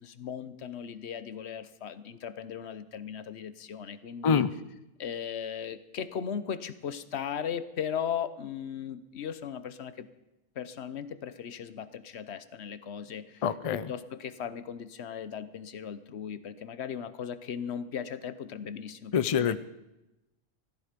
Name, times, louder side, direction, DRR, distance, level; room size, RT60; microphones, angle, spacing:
voice 1, 0.0-4.4 5.0-10.1 10.6-13.3 13.7-19.6, left 8 dB, 85° left, 13 dB, 1.1 m, -37 dB
voice 2, 13.4-13.9 19.1-19.6, left 7 dB, 40° left, 14 dB, 0.5 m, -25 dB
16.5 x 13.5 x 5.1 m, 0.94 s
omnidirectional pair, 1.1 m